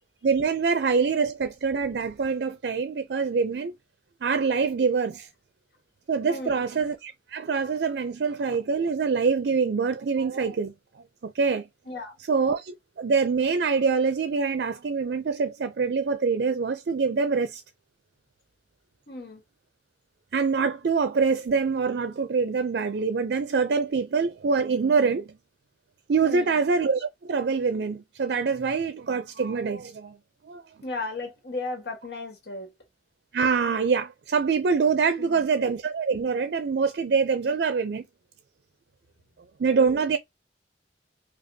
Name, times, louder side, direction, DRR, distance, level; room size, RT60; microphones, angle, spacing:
voice 1, 0.2-3.7 4.2-5.3 6.1-10.7 11.2-11.7 12.3-17.6 20.3-25.3 26.1-30.2 30.5-30.6 33.3-38.0 39.6-40.2, right 5 dB, 65° right, 0.4 m, -25 dB
voice 2, 6.2-6.6 11.8-12.1 19.1-19.4 26.2-26.6 30.8-32.7 35.2-35.5, left 2 dB, 65° left, 1.4 m, -35 dB
5.0 x 2.3 x 2.7 m
head